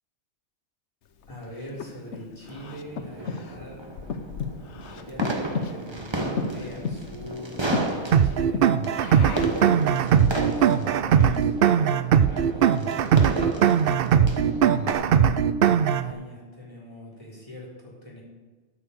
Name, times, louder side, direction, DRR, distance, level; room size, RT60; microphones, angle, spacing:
Breathing, 1.2-9.7, left 5 dB, 80° left, 1.1 m, -34 dB
voice 1, 1.3-3.9 4.9-10.3 10.6-12.0 12.3-13.9 14.6-18.2, left 1 dB, 30° left, -4 dB, 4.2 m, -43 dB
sound 1, 2.5-14.9, right 2 dB, 25° right, 1.3 m, -34 dB
sound 2, 8.1-16.1, right 8 dB, 60° right, 0.7 m, -20 dB
13.0 x 6.9 x 6.6 m, 1.3 s
omnidirectional pair, 1.2 m